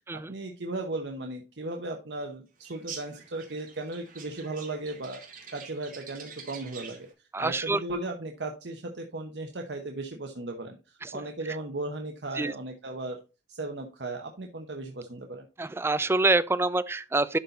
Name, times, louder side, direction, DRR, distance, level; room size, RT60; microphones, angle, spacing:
voice 1, 0.1-5.2 5.5-7.1 7.4-13.2 13.5-15.5, right 2 dB, 75° right, 1.0 m, -36 dB
sound 1, 2.6-7.1, right 6 dB, 50° right, 2.0 m, -46 dB
voice 2, 7.3-7.8 11.0-11.1 12.4-12.5 15.6-17.4, right 2 dB, 15° right, 0.4 m, -26 dB
11.5 x 4.0 x 4.0 m
head